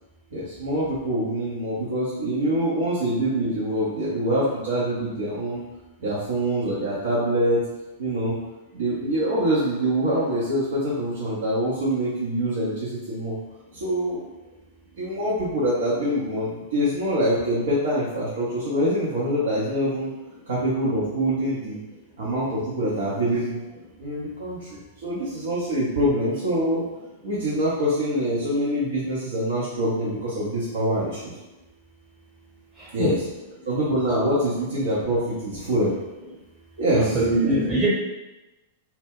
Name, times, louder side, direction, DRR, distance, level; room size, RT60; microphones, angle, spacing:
voice 1, 0.3-5.6 6.0-7.6 8.0-8.4 8.7-13.3 13.7-14.3 15.0-20.1 20.5-21.8 22.2-23.6 24.0-26.8 27.2-31.3 32.9-33.2 33.6-35.9 36.8-37.2 37.4-37.6, equal, 60° right, -8 dB, 0.6 m, -25 dB
voice 2, 36.9-37.9, right 2 dB, 25° right, -9 dB, 1.0 m, -23 dB
2.2 x 2.1 x 3.5 m, 1.0 s
figure-of-eight pair, 100°, 0 cm